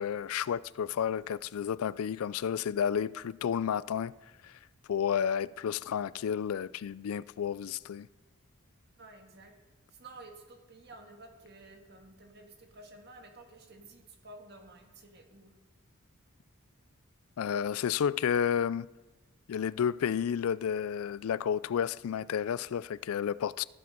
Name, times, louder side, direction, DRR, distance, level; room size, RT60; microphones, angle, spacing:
voice 1, 0.0-4.1 4.4-4.6 4.9-8.1 17.4-18.9 19.5-23.6, left 8 dB, 75° left, 0.3 m, -31 dB
voice 2, 9.0-9.5 9.9-15.5, right 2 dB, 45° right, 1.7 m, -52 dB
18.0 x 7.7 x 5.3 m
head